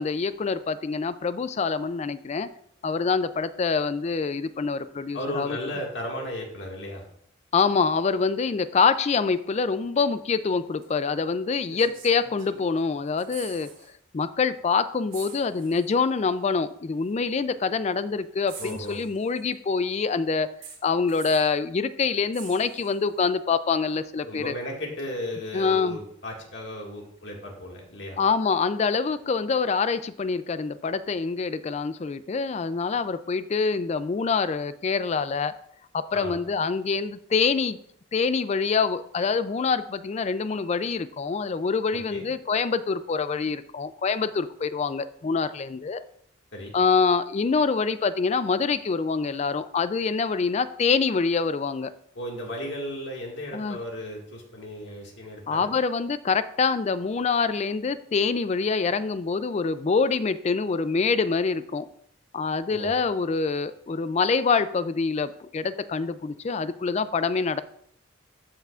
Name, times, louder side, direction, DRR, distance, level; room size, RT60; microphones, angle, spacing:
voice 1, 0.0-2.5 2.8-5.6 7.5-13.7 14.1-20.5 20.8-24.5 25.5-26.0 28.2-35.5 35.9-37.8 38.1-46.0 46.7-51.9 53.5-53.8 55.5-61.9 62.3-67.6, left 5 dB, 30° left, 13 dB, 0.3 m, -25 dB
voice 2, 5.1-7.1 18.6-19.0 24.2-28.2 36.1-36.3 41.9-42.3 46.5-46.8 52.2-55.7 62.7-62.9, left 1 dB, 55° left, -1 dB, 1.9 m, -35 dB
sound 1, 10.8-11.0 11.7-12.8 13.1-13.9 14.2-14.4 15.1-16.0 17.0-17.1 18.5-19.5 20.6-21.6 22.3-23.2 25.0-25.1, right 6 dB, 65° right, 2.5 m, -46 dB
13.0 x 5.7 x 2.4 m, 0.69 s
head